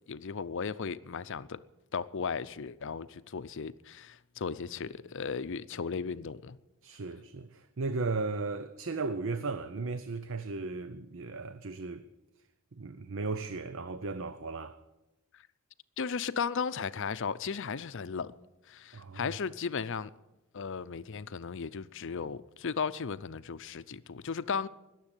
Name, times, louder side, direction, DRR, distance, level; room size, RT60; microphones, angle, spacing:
voice 1, 0.1-1.6 1.9-6.6 16.0-18.3 18.7-20.1 20.5-24.7, left 5 dB, 60° left, 0.6 m, -35 dB
voice 2, 6.8-12.1 12.7-14.8 18.9-19.3, right 3 dB, 60° right, 0.7 m, -36 dB
20.0 x 7.5 x 9.0 m
head